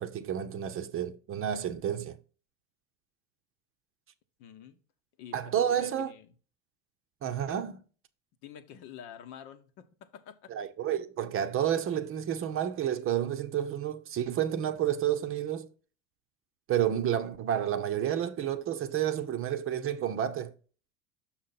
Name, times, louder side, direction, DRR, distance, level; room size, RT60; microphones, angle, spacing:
voice 1, 0.0-2.2 5.3-6.1 7.2-7.8 10.5-15.7 16.7-20.5, right 10 dB, 35° right, 0.8 m, -30 dB
voice 2, 4.4-4.8 5.2-6.3 8.4-10.5, left 9 dB, 55° left, 1.1 m, -48 dB
6.4 x 5.8 x 4.1 m
hypercardioid pair, 80°, 39 cm